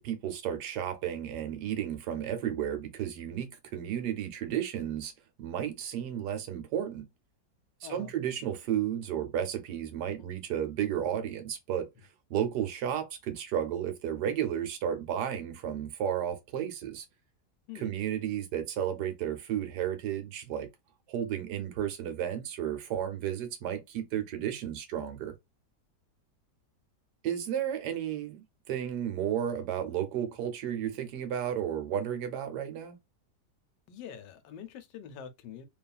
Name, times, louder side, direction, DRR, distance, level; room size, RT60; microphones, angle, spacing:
voice 1, 0.0-5.1 5.4-7.0 7.8-11.9 12.3-17.1 17.7-20.7 21.1-25.3 27.2-33.0, right 10 dB, 75° right, 1.2 m, -33 dB
voice 2, 7.8-8.1 10.2-10.3 17.7-17.9 33.9-35.7, left 8 dB, 90° left, 1.3 m, -45 dB
3.0 x 2.4 x 2.2 m
omnidirectional pair, 1.8 m